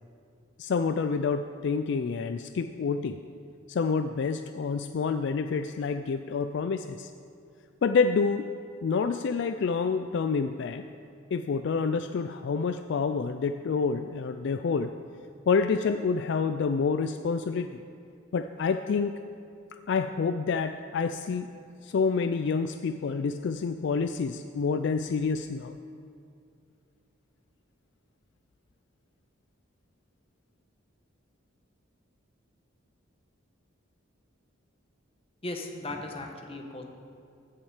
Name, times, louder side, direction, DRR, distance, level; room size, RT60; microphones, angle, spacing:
voice 1, 0.6-3.2 3.7-7.1 7.8-8.5 8.8-10.8 11.3-14.9 15.5-17.7 18.3-19.2 19.9-21.5 21.8-25.8, left 5 dB, 60° left, 9 dB, 0.3 m, -28 dB
voice 2, 35.4-36.8, left 2 dB, 30° left, 3 dB, 1.0 m, -37 dB
15.0 x 7.2 x 4.9 m, 2.5 s
head